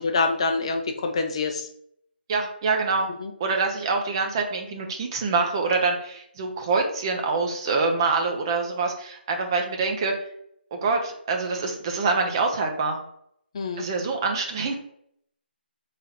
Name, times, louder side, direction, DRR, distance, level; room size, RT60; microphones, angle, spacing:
voice 1, 0.0-1.7 3.2-3.3 13.5-13.9, left 3 dB, 30° left, 5 dB, 0.4 m, -26 dB
voice 2, 2.3-3.1 3.4-10.1 10.7-13.0 13.8-14.8, right 4 dB, 25° right, 3 dB, 0.6 m, -25 dB
3.2 x 2.8 x 3.9 m, 0.70 s
hypercardioid pair, 165°, 6 cm